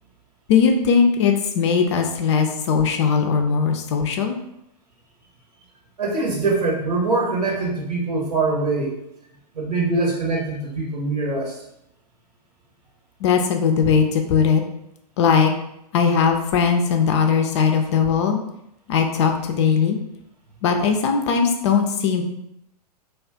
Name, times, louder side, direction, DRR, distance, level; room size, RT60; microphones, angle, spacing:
voice 1, 0.5-4.4 13.2-14.6 15.2-15.5 15.9-18.4 18.9-20.0 20.6-22.2, left 6 dB, 45° left, 4 dB, 0.4 m, -19 dB
voice 2, 6.0-8.9 9.5-11.6, right 3 dB, 70° right, -2 dB, 1.0 m, -23 dB
2.4 x 2.3 x 3.4 m, 0.83 s
figure-of-eight pair, 105°, 21 cm